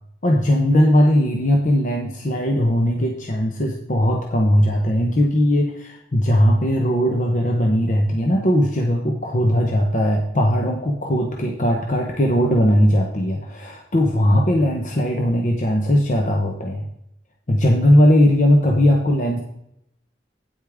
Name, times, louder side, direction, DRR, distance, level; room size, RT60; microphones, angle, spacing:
voice 1, 0.2-16.9 17.5-19.4, equal, 45° left, 0 dB, 0.9 m, -18 dB
9.2 x 8.3 x 3.6 m, 0.77 s
head